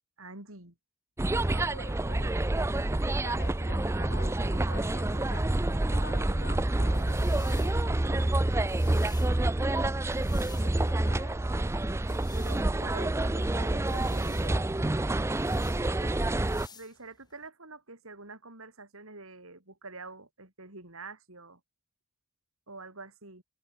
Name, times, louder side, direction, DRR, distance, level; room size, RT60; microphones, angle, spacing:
voice 1, 0.2-0.7 1.3-1.9 12.3-14.7 15.9-16.4 16.7-21.6 22.7-23.4, right 3 dB, 70° right, 4.7 m, -46 dB
sound 1, 1.2-16.7, right 1 dB, 10° right, 0.4 m, -28 dB
voice 2, 1.8-2.5 3.2-5.5 5.9-8.4 10.3-11.7, left 3 dB, 50° left, 6.5 m, -48 dB
sound 2, 6.5-17.5, left 6 dB, 20° left, 5.5 m, -55 dB
head